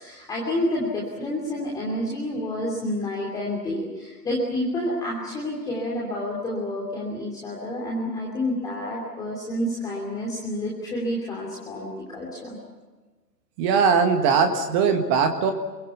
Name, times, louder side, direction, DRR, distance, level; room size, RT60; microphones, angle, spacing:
voice 1, 0.0-12.6, left 1 dB, 5° left, -3 dB, 3.1 m, -29 dB
voice 2, 13.6-15.5, right 5 dB, 20° right, 6 dB, 1.7 m, -20 dB
29.0 x 23.0 x 7.1 m, 1.3 s
figure-of-eight pair, 135°, 50 cm